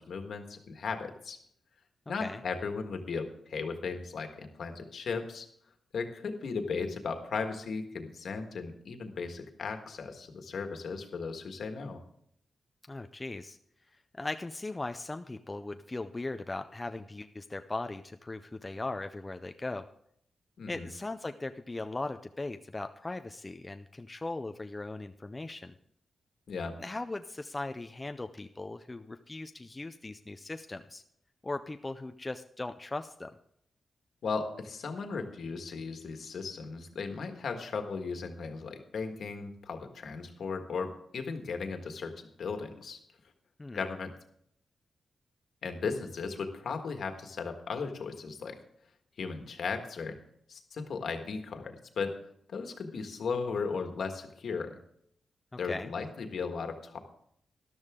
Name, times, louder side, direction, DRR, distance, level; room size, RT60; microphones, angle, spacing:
voice 1, 0.0-1.4 2.1-5.5 5.9-12.0 20.6-20.9 26.5-26.8 34.2-43.0 43.7-44.2 45.6-48.6 49.2-50.1 50.5-52.1 52.5-54.8 55.6-57.0, left 5 dB, 65° left, 5 dB, 1.6 m, -36 dB
voice 2, 12.9-13.6 14.1-19.9 20.7-25.7 26.8-31.0 31.4-33.3 43.6-43.8 55.5-55.9, left 2 dB, 20° left, 8 dB, 0.4 m, -38 dB
13.0 x 12.0 x 3.7 m, 0.71 s
wide cardioid pair, 155°, 0 cm